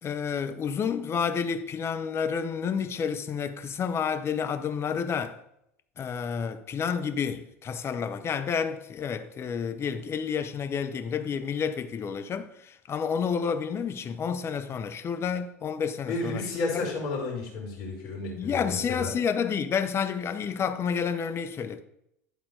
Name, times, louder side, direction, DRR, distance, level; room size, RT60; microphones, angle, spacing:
voice 1, 0.0-5.4 6.0-16.5 16.7-16.9 18.3-21.8, left 6 dB, 30° left, 0.8 m, -30 dB
voice 2, 16.1-19.1, left 3 dB, 55° left, 3.0 m, -32 dB
11.0 x 3.9 x 4.7 m
hypercardioid pair, 75°, 8 cm